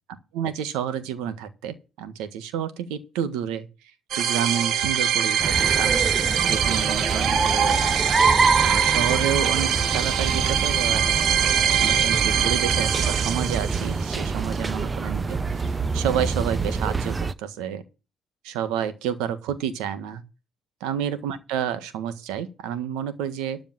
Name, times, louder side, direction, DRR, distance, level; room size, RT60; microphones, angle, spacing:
voice 1, 0.3-3.7 4.1-5.9 6.4-7.8 8.6-11.1 11.8-17.8 18.4-20.2 20.8-23.7, right 9 dB, 90° right, 1.5 m, -29 dB
sound 1, 4.1-14.0, right 8 dB, 70° right, 1.3 m, -23 dB
sound 2, 5.4-17.3, right 4 dB, 25° right, 0.7 m, -25 dB
12.5 x 5.1 x 7.5 m
supercardioid pair, 80°, 0 cm